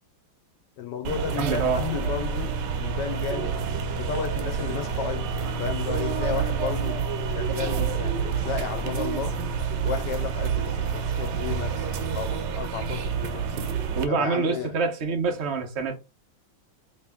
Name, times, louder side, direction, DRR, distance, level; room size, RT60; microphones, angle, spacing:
voice 1, 0.8-3.5 4.0-7.0 7.3-9.4 9.8-13.6 14.1-14.8, left 7 dB, 70° left, 1.1 m, -33 dB
sound 1, 1.0-14.0, right 6 dB, 75° right, 1.1 m, -28 dB
voice 2, 1.4-1.8 13.9-15.9, right 4 dB, 90° right, 0.5 m, -26 dB
3.2 x 2.9 x 3.4 m
omnidirectional pair, 2.1 m